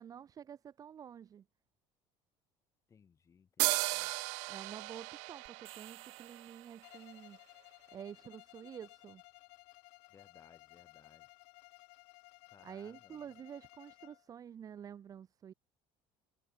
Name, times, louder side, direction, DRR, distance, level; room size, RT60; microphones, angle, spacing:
voice 1, 0.0-1.4 4.5-7.4 7.9-9.2 12.6-15.5, right 8 dB, 30° right, 0.9 m, -49 dB
voice 2, 2.9-4.1 10.1-11.3 12.5-13.3, left 6 dB, 25° left, 5.6 m, -63 dB
sound 1, 3.6-7.1, right 36 dB, 85° right, 0.5 m, -36 dB
sound 2, 5.5-7.4, right 14 dB, 50° right, 2.3 m, -57 dB
Bowed string instrument, 6.8-14.3, left 39 dB, 90° left, 7.3 m, -58 dB
cardioid pair, 155°, 12 cm